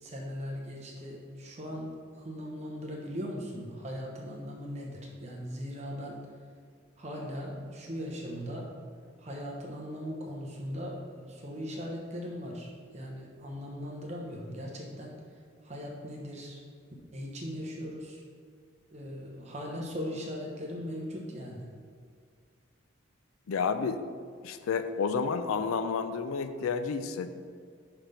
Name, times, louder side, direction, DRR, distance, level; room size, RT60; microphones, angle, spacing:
voice 1, 0.0-6.2 7.0-8.7 9.2-15.2 15.6-16.6 17.1-18.2 18.9-21.7, equal, 30° right, -1 dB, 0.9 m, -39 dB
voice 2, 23.5-24.0 24.4-27.4, left 5 dB, 90° left, 10 dB, 0.4 m, -30 dB
5.8 x 3.5 x 5.6 m, 2.1 s
head